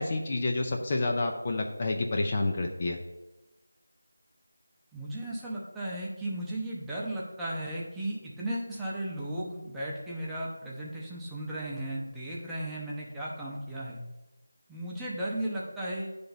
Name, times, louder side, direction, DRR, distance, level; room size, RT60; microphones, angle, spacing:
voice 1, 0.0-3.0, left 2 dB, 35° left, 2 dB, 0.5 m, -29 dB
voice 2, 4.9-14.0 14.7-16.2, right 1 dB, 5° right, -7 dB, 0.8 m, -35 dB
9.8 x 3.4 x 4.1 m, 1.1 s
figure-of-eight pair, 170°, 0 cm